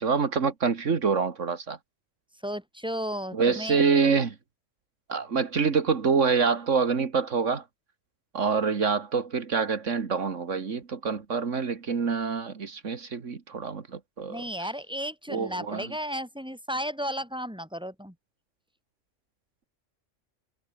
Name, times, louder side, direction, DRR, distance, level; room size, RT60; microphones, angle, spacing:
voice 1, 0.0-1.8 3.3-4.4 5.1-7.6 8.3-14.7 15.3-15.9, right 5 dB, 80° right, 2.1 m, -26 dB
voice 2, 2.4-3.8 14.3-18.1, equal, 5° right, 8.0 m, -34 dB
omnidirectional pair, 1.3 m